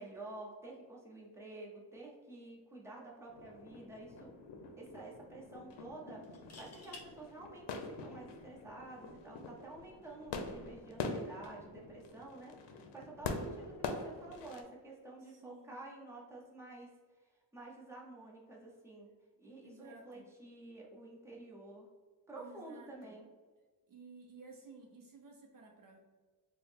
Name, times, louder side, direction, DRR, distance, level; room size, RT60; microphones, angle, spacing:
voice 1, 0.0-4.4 4.8-16.9 17.5-19.1 19.4-21.9 22.3-23.3, right 2 dB, 5° right, -4 dB, 0.7 m, -50 dB
sound 1, 3.3-14.6, left 4 dB, 90° left, 0.6 m, -45 dB
sound 2, 3.4-3.6 4.0-4.1 6.2-7.1 8.9-9.1, left 3 dB, 40° left, 0.7 m, -53 dB
voice 2, 13.3-13.7 15.2-15.7 19.6-20.3 22.4-23.2 23.9-26.0, right 4 dB, 50° right, 2 dB, 0.5 m, -55 dB
4.5 x 2.0 x 3.5 m, 1.4 s
wide cardioid pair, 130°, 42 cm